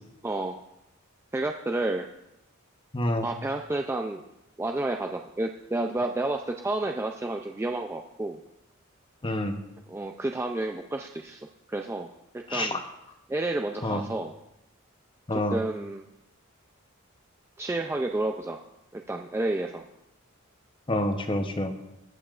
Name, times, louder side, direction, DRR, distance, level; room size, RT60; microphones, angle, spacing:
voice 1, 0.2-0.6 1.3-2.1 3.2-4.2 4.6-8.4 9.9-12.1 12.3-12.8 13.3-14.3 15.3-16.0 17.6-18.6 18.9-19.8, right 2 dB, 10° right, 3 dB, 0.3 m, -30 dB
voice 2, 2.9-3.3 9.2-9.6 12.5-12.8 13.8-14.0 15.3-15.6 20.9-21.7, left 1 dB, 25° left, 6 dB, 0.7 m, -27 dB
20.5 x 7.0 x 2.4 m, 0.89 s
head